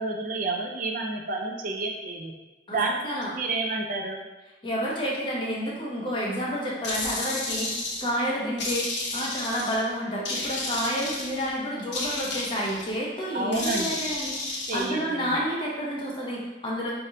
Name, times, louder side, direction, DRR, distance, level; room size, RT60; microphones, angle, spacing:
voice 1, 0.0-2.3 2.7-4.2 8.4-8.5 13.3-13.9 14.7-15.3, right 3 dB, 45° right, 1 dB, 0.4 m, -30 dB
voice 2, 2.7-3.3 4.6-16.9, equal, 25° left, -5 dB, 0.8 m, -30 dB
sound 1, 6.8-8.1 8.6-9.8 10.3-11.5 11.9-12.9 13.5-14.9, left 2 dB, 75° left, 0.7 m, -32 dB
3.7 x 3.3 x 2.7 m, 1.1 s
head